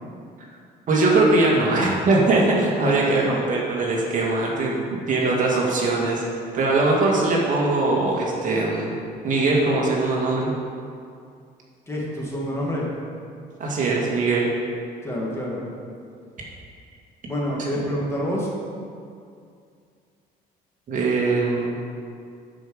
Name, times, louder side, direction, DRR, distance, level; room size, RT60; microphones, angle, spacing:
voice 1, 0.9-4.7 5.1-6.2 6.5-8.9 9.2-10.5 13.6-14.5 20.9-21.8, right 2 dB, 50° right, -3 dB, 2.0 m, -21 dB
voice 2, 2.8-3.4 11.9-12.9 15.0-15.6 17.3-18.5, equal, 15° left, -4 dB, 2.2 m, -27 dB
12.5 x 5.2 x 5.0 m, 2.3 s
cardioid pair, 110°, 17 cm